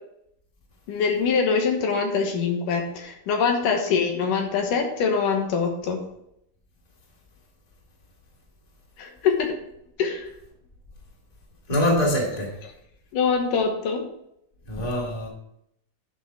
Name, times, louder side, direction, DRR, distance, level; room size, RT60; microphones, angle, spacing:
voice 1, 0.9-6.0 9.0-9.5 10.0-10.3 12.6-12.7 13.1-14.0, left 5 dB, 75° left, 3 dB, 2.8 m, -24 dB
voice 2, 11.7-12.5 14.7-15.3, left 1 dB, 15° left, -2 dB, 2.1 m, -23 dB
10.5 x 6.1 x 4.7 m, 0.77 s
omnidirectional pair, 3.8 m